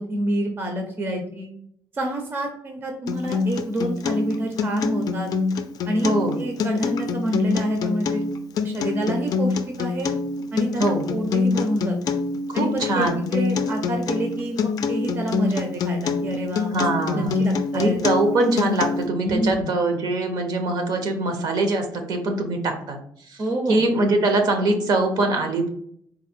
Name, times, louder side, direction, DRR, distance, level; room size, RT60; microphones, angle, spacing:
voice 1, 0.0-1.5 1.9-5.3 5.9-8.2 8.6-10.1 10.5-10.8 11.1-12.0 12.5-16.9 17.1-18.0 19.2-19.7 23.4-23.8, right 1 dB, 30° right, 3 dB, 0.6 m, -27 dB
Acoustic guitar, 3.1-19.1, left 4 dB, 55° left, 0.4 m, -25 dB
voice 2, 6.0-6.4 10.8-11.0 12.5-13.2 16.7-17.4 17.7-23.0 23.3-23.4 23.7-25.7, right 2 dB, 60° right, 5 dB, 0.8 m, -22 dB
4.1 x 2.2 x 4.3 m, 0.67 s
cardioid pair, 175°, 8 cm